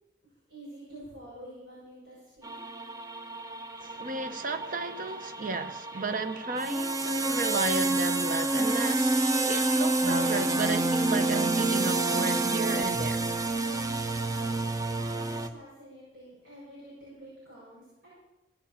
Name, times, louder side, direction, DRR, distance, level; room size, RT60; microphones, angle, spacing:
voice 1, 0.5-2.5 15.2-18.1, right 1 dB, 70° right, 6.8 m, -48 dB
sound 1, 2.4-15.5, right 2 dB, 20° right, 0.7 m, -28 dB
voice 2, 3.8-13.3, right 3 dB, 50° right, 0.9 m, -33 dB
17.0 x 7.3 x 7.2 m
head